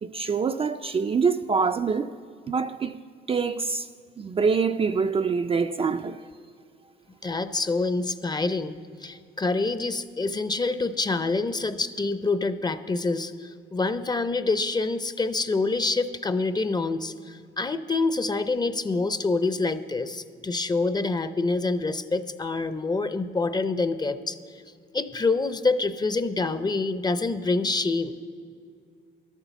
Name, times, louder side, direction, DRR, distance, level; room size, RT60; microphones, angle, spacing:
voice 1, 0.0-2.1 2.5-3.0 3.3-3.9 4.2-6.2, right 5 dB, 30° right, 0.3 m, -25 dB
voice 2, 7.2-24.4 24.9-28.2, left 3 dB, 20° left, 0.5 m, -26 dB
12.0 x 8.2 x 6.9 m
cardioid pair, 90°, 20 cm